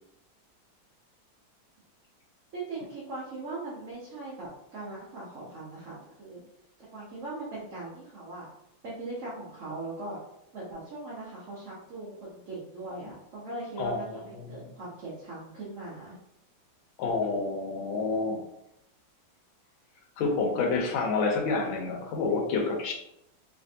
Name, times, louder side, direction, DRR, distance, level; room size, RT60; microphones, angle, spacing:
voice 1, 2.5-6.4 6.9-8.5 8.8-10.2 10.5-16.2, right 2 dB, 55° right, -7 dB, 0.9 m, -40 dB
voice 2, 13.8-14.2 14.5-14.6 17.0-18.4 20.2-22.9, left 4 dB, 85° left, 1 dB, 1.5 m, -28 dB
3.3 x 3.1 x 2.7 m, 0.81 s
omnidirectional pair, 2.1 m